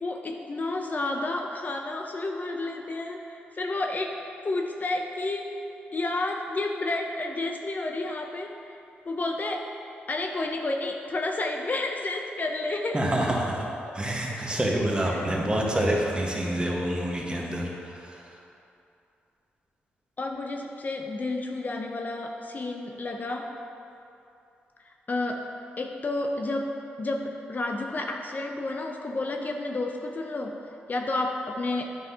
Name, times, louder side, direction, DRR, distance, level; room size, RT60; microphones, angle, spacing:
voice 1, 0.0-4.2 4.4-5.5 5.9-8.5 9.0-9.7 10.1-13.0 14.3-14.6 15.1-15.3 20.2-23.5 25.1-25.5 25.8-30.6 30.9-31.9, left 2 dB, 40° left, 2 dB, 0.6 m, -31 dB
voice 2, 12.9-13.7 13.9-18.2, right 1 dB, 25° right, -2 dB, 1.3 m, -27 dB
8.9 x 5.7 x 2.8 m, 2.7 s
supercardioid pair, 50°, 4 cm